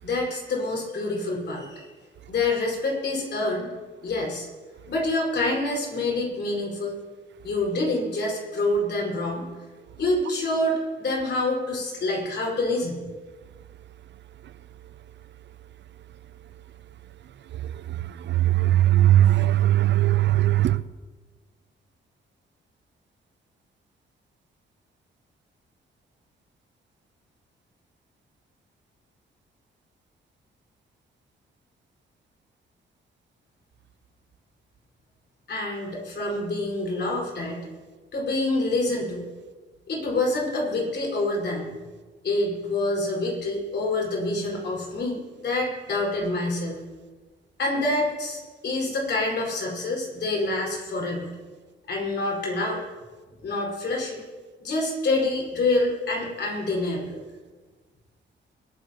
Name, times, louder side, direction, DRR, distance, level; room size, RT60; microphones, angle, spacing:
voice 1, 0.0-1.9 2.3-3.7 4.0-4.5 4.9-7.0 7.4-9.5 10.0-13.0 35.5-37.6 38.1-39.2 39.9-41.8 42.2-46.8 47.6-51.3 51.9-52.8 53.4-54.2 54.6-57.2, left 2 dB, 60° left, 5.5 m, -27 dB
voice 2, 18.4-20.8, right 13 dB, 65° right, 0.5 m, -19 dB
22.0 x 14.5 x 3.1 m
cardioid pair, 115°, 20 cm